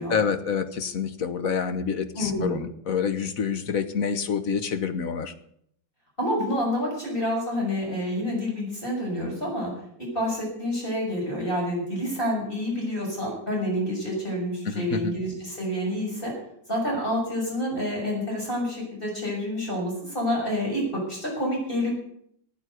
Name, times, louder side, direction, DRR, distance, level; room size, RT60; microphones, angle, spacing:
voice 1, 0.1-5.3 14.7-15.1, left 6 dB, 50° left, 10 dB, 1.3 m, -27 dB
voice 2, 2.1-2.7 6.2-9.7 10.0-16.3 16.7-21.9, equal, 25° left, -2 dB, 7.0 m, -28 dB
15.0 x 9.2 x 8.2 m, 0.69 s
omnidirectional pair, 2.0 m